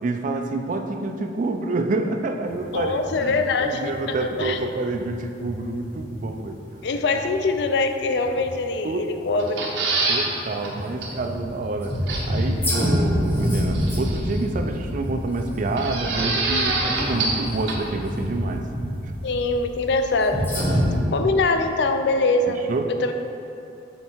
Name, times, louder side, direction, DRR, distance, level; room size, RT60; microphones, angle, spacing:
voice 1, 0.0-6.6 8.8-9.1 9.4-9.5 10.1-12.0 12.2-18.7 20.6-21.2 22.7-22.9, right 2 dB, 45° right, 6 dB, 0.4 m, -28 dB
sound 1, 2.4-21.0, equal, 10° left, 1.4 m, -28 dB
voice 2, 2.7-4.6 6.8-9.6 19.2-20.8 21.1-22.6 23.0-23.1, left 3 dB, 65° left, 7 dB, 0.4 m, -23 dB
sound 2, 9.4-10.3 10.6-10.7 11.0-11.1 12.1-12.5 13.7-14.4 15.8-17.4 17.7-17.8, right 3 dB, 75° right, 0.9 m, -25 dB
7.2 x 3.6 x 4.5 m, 2.7 s
head